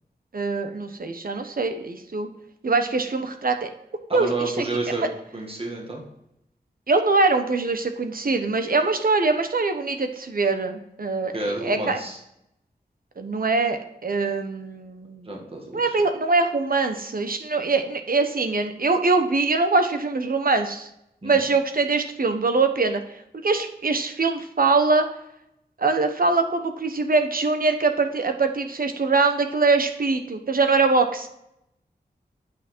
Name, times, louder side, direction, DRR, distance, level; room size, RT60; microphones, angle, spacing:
voice 1, 0.3-2.3 2.6-3.7 4.1-4.6 6.9-12.0 13.2-15.3 15.7-20.9 21.2-23.0 23.4-25.1 25.8-31.3, right 3 dB, 60° right, 7 dB, 1.1 m, -23 dB
voice 2, 4.1-6.0 11.3-12.2 15.2-16.0 21.2-21.4, right 2 dB, 35° right, 0 dB, 1.9 m, -30 dB
8.9 x 6.1 x 4.4 m, 0.81 s
wide cardioid pair, 75°, 17 cm